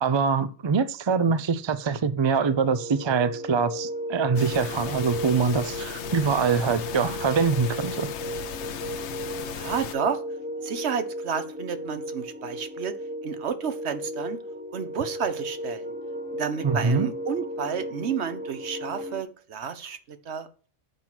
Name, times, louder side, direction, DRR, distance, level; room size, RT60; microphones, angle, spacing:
voice 1, 0.0-8.1 16.6-17.1, right 5 dB, 45° right, 0.3 m, -24 dB
sound 1, 2.4-19.2, equal, 10° right, 0.9 m, -35 dB
sound 2, 4.4-10.0, left 9 dB, 70° left, 0.9 m, -36 dB
voice 2, 9.5-10.2 10.6-12.9 13.2-14.4 14.7-15.9 16.3-20.7, right 7 dB, 65° right, 1.1 m, -31 dB
8.2 x 4.5 x 5.8 m
omnidirectional pair, 1.2 m